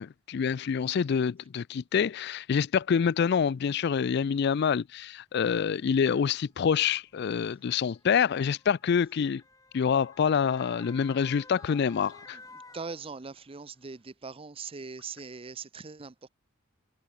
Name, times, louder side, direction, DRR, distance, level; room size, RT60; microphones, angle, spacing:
voice 1, 0.0-9.4 9.7-12.4, left 7 dB, 55° left, 0.4 m, -26 dB
Motor vehicle (road) / Siren, 4.9-5.0 6.0-13.6 14.0-14.1, left 3 dB, 20° left, 2.6 m, -53 dB
voice 2, 12.7-16.3, right 4 dB, 30° right, 0.6 m, -41 dB
head